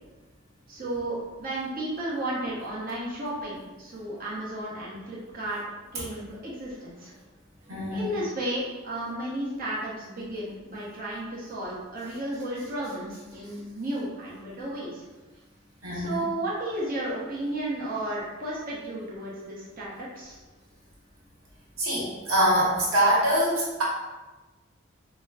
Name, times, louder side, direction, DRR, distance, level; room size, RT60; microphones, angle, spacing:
voice 1, 0.7-5.6 5.9-7.1 7.9-15.0 15.9-20.4, right 1 dB, 45° right, -6 dB, 0.9 m, -33 dB
voice 2, 7.7-8.1 15.8-16.2 21.8-23.8, right 1 dB, 70° right, -5 dB, 1.1 m, -24 dB
4.8 x 2.1 x 2.4 m, 1.2 s
head